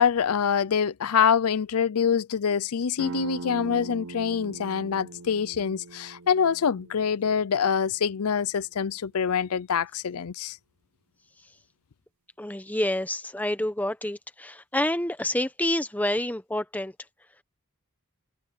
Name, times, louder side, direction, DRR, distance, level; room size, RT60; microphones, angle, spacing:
voice 1, 0.0-10.6, left 7 dB, 85° left, 0.5 m, -25 dB
sound 1, 3.0-8.4, right 3 dB, 65° right, 0.8 m, -41 dB
voice 2, 12.4-16.9, left 1 dB, 5° left, 1.0 m, -28 dB
head